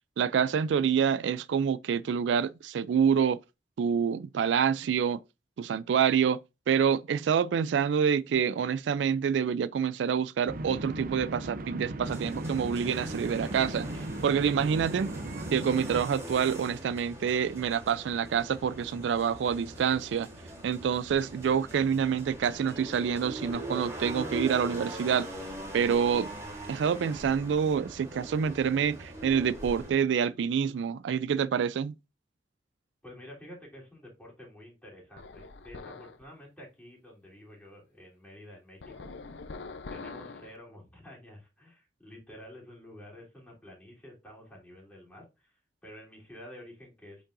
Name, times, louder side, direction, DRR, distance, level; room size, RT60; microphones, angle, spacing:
voice 1, 0.2-3.4 3.8-5.2 5.6-6.4 6.7-13.9 14.2-15.1 15.5-20.3 20.6-25.3 25.7-26.3 26.7-31.9, right 7 dB, 90° right, 0.3 m, -27 dB
sound 1, 10.5-16.1, right 1 dB, 55° right, 0.6 m, -37 dB
sound 2, 12.0-29.9, right 1 dB, 15° right, 2.3 m, -42 dB
voice 2, 33.0-39.4 39.9-47.2, left 1 dB, 10° left, 3.2 m, -50 dB
sound 3, 35.2-36.2 38.8-40.6, left 3 dB, 80° left, 0.6 m, -43 dB
8.4 x 5.3 x 2.5 m
head